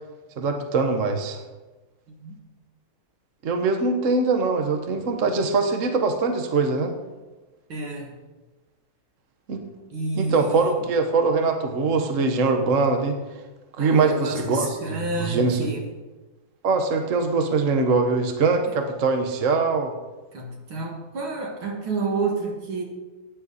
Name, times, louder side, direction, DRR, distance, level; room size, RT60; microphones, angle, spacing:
voice 1, 0.4-1.4 3.4-6.9 9.5-9.6 10.1-13.2 13.8-15.7 16.6-19.9, right 4 dB, 45° right, 5 dB, 1.3 m, -22 dB
voice 2, 7.7-8.1 9.9-10.8 13.8-15.9 18.7-18.8 20.3-22.8, right 3 dB, 75° right, 1 dB, 2.8 m, -30 dB
14.5 x 9.7 x 4.2 m, 1.2 s
omnidirectional pair, 2.3 m